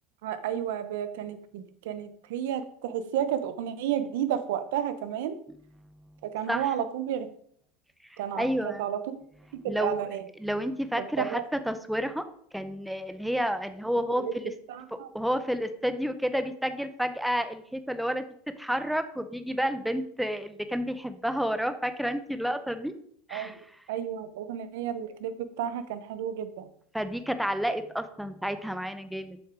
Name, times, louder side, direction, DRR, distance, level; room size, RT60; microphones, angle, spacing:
voice 1, 0.2-5.4 6.2-7.3 8.2-9.2 9.6-10.2 11.0-11.4 14.2-14.3 14.7-15.1 23.3-23.5 23.9-26.7, right 10 dB, 80° right, 11 dB, 0.8 m, -32 dB
voice 2, 8.1-8.8 9.6-12.2 12.5-14.5 15.1-18.2 18.6-22.9 23.3-23.6 26.9-29.4, equal, ahead, 10 dB, 0.5 m, -30 dB
7.4 x 6.0 x 4.8 m, 0.63 s
supercardioid pair, 145°, 0 cm